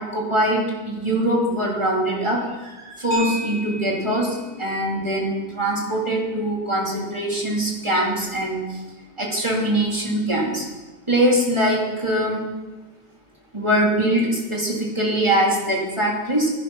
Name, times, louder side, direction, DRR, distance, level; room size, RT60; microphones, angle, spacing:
voice 1, 0.0-8.8 9.2-10.7 11.1-12.5 13.5-16.5, right 1 dB, 20° right, -2 dB, 2.7 m, -22 dB
sound 1, 3.1-11.5, left 1 dB, 40° left, 3.1 m, -41 dB
13.0 x 11.0 x 5.5 m, 1.2 s
omnidirectional pair, 1.5 m